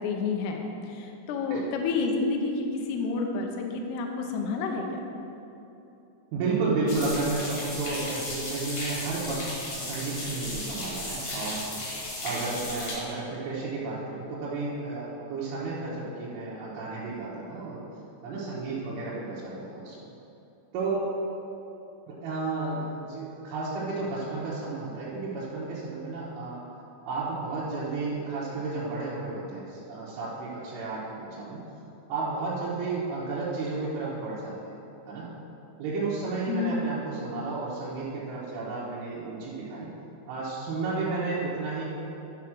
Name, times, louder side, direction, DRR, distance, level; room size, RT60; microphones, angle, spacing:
voice 1, 0.0-5.0 36.5-36.9, left 4 dB, 80° left, 2 dB, 2.4 m, -29 dB
voice 2, 6.3-11.6 12.2-17.8 18.2-20.0 20.7-21.0 22.1-26.6 27.1-31.6 32.1-34.7 35.1-35.3 35.8-39.9 40.3-41.8, right 3 dB, 85° right, -8 dB, 3.7 m, -32 dB
sound 1, 6.9-12.9, left 1 dB, 45° left, 2.2 m, -35 dB
10.5 x 4.8 x 6.0 m, 3.0 s
omnidirectional pair, 5.7 m